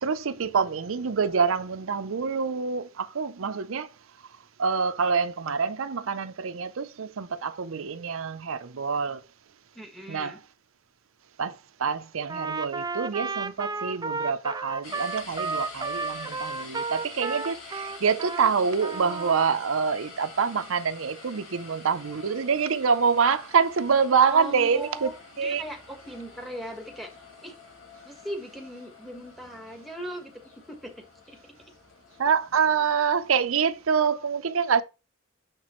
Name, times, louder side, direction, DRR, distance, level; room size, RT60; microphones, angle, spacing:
voice 1, 0.0-3.9 4.6-9.2 10.1-10.4 11.4-25.1 25.4-25.6 32.2-34.8, right 6 dB, 85° right, 0.6 m, -26 dB
voice 2, 9.7-10.4 24.2-25.1 25.4-27.1 27.4-27.5 28.0-30.4 30.7-31.5, equal, ahead, 1.5 m, -39 dB
Trumpet, 12.3-18.5 18.8-19.6, right 4 dB, 20° right, 0.4 m, -33 dB
sound 1, 14.8-33.9, left 4 dB, 75° left, 2.5 m, -47 dB
6.6 x 6.0 x 3.1 m
head